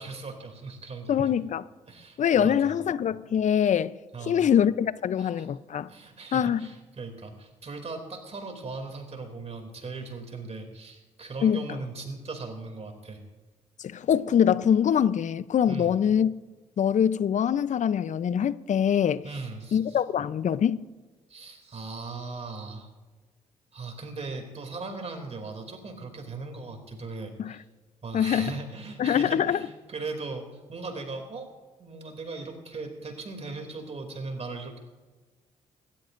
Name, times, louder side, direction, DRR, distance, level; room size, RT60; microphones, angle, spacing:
voice 1, 0.0-1.3 1.9-2.8 4.1-4.5 5.2-5.5 5.9-13.2 15.7-15.9 19.2-20.0 21.3-22.9 23.7-27.6 28.0-31.5 31.8-34.8, right 3 dB, 40° right, 2.9 m, -38 dB
voice 2, 1.1-1.7 2.2-3.9 4.3-5.9 6.3-6.6 11.4-11.8 13.8-16.3 16.8-19.2 19.7-20.9 27.4-27.5 28.1-28.5 29.0-29.6, left 8 dB, 50° left, 0.6 m, -24 dB
27.5 x 13.5 x 2.6 m
hypercardioid pair, 45°, 16 cm